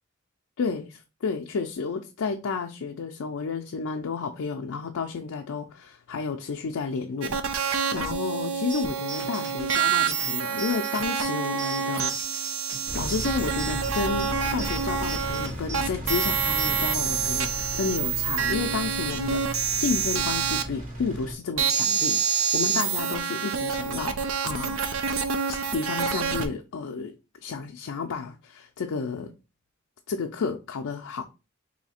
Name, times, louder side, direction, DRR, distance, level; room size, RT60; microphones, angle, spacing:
voice 1, 0.6-12.1 12.4-12.5 12.9-24.9 25.5-27.1 27.4-29.3 30.1-31.2, left 5 dB, 90° left, 0.4 m, -31 dB
sound 1, 7.2-15.5 15.7-20.6 21.6-26.5, right 6 dB, 85° right, 0.5 m, -27 dB
sound 2, 8.7-16.7, right 4 dB, 65° right, 1.1 m, -39 dB
Engine, 12.9-21.3, equal, 40° right, 1.2 m, -36 dB
3.2 x 2.7 x 4.1 m
head